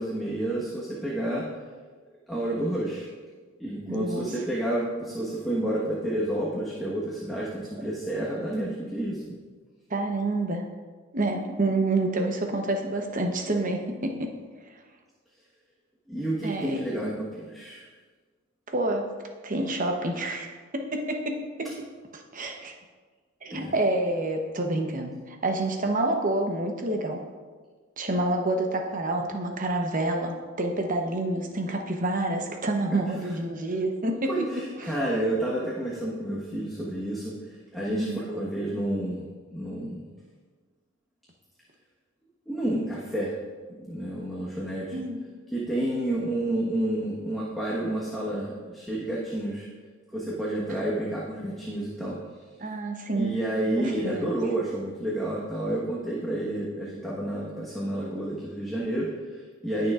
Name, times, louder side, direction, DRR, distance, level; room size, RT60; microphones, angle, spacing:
voice 1, 0.0-1.4 2.3-3.1 3.6-9.3 16.1-17.9 23.5-23.7 34.3-39.2 39.5-40.0 42.5-43.3 43.8-45.0 45.5-49.7 50.1-52.2 53.1-59.9, right 1 dB, ahead, -7 dB, 1.3 m, -30 dB
voice 2, 3.9-4.3 9.9-10.7 11.1-14.3 16.4-16.8 18.7-19.1 19.4-20.5 20.9-21.7 22.1-22.7 23.4-27.2 28.0-34.3 34.8-34.9 37.9-38.2 44.9-45.2 50.7-50.8 52.6-53.3 53.8-54.4, right 2 dB, 40° right, 3 dB, 0.9 m, -28 dB
19.0 x 6.7 x 2.5 m, 1.5 s
head